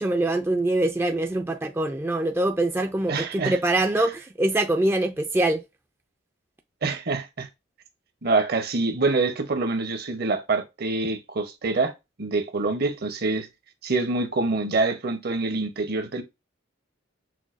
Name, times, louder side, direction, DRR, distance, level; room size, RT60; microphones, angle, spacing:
voice 1, 0.0-5.6, right 1 dB, 10° right, 0.3 m, -24 dB
voice 2, 3.1-3.5 6.8-7.5 8.2-11.9 12.2-13.5 13.8-16.2, right 3 dB, 50° right, 0.8 m, -25 dB
6.1 x 2.2 x 2.5 m
head